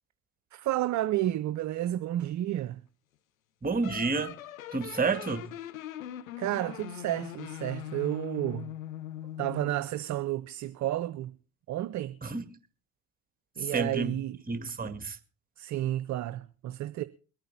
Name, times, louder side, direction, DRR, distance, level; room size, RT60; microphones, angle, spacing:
voice 1, 0.5-2.8 6.4-8.7 9.4-11.3 11.7-12.2 13.6-14.4 15.6-17.0, right 14 dB, 45° right, 0.7 m, -31 dB
voice 2, 3.6-4.4 4.7-5.5 12.2-12.5 13.6-14.2 14.5-15.2, right 4 dB, 20° right, 2.0 m, -30 dB
sound 1, 3.8-9.9, left 11 dB, 85° left, 0.8 m, -41 dB
22.5 x 9.1 x 4.2 m
hypercardioid pair, 65°, 40 cm